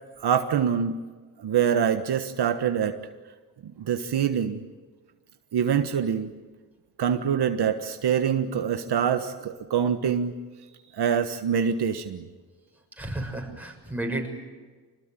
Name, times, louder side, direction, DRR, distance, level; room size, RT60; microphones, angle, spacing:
voice 1, 0.2-1.0 1.4-3.0 3.6-4.6 5.5-6.3 7.0-10.3 10.9-12.3, right 8 dB, 65° right, 7 dB, 1.5 m, -25 dB
voice 2, 13.0-14.3, right 1 dB, 5° right, 1 dB, 6.9 m, -32 dB
26.5 x 20.0 x 9.1 m, 1.4 s
cardioid pair, 110°, 42 cm